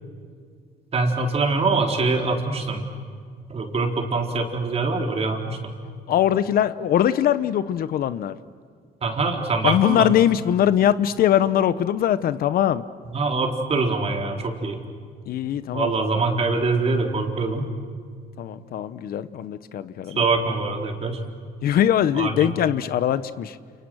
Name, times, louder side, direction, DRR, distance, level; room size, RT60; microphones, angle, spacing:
voice 1, 0.9-2.8 3.5-5.7 9.0-10.1 13.1-14.8 15.7-17.7 20.2-21.2 22.2-22.3, right 3 dB, 35° right, 2 dB, 4.1 m, -24 dB
voice 2, 6.1-8.4 9.6-12.8 15.3-15.9 18.4-20.2 21.6-23.6, left 10 dB, 60° left, 14 dB, 0.9 m, -21 dB
29.5 x 29.5 x 6.4 m, 2.1 s
cardioid pair, 110°, 17 cm